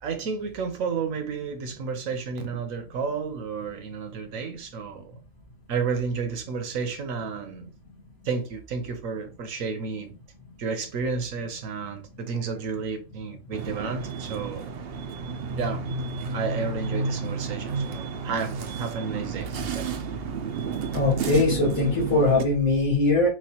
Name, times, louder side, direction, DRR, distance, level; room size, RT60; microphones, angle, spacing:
voice 1, 0.0-5.1 5.7-7.7 8.2-10.1 10.6-14.7 15.6-15.8 16.3-19.9, right 5 dB, 75° right, 1.3 m, -31 dB
sound 1, 13.5-22.4, right 4 dB, 55° right, 0.7 m, -31 dB
voice 2, 20.9-23.3, left 3 dB, 85° left, 2.3 m, -21 dB
6.3 x 2.5 x 2.9 m
omnidirectional pair, 1.4 m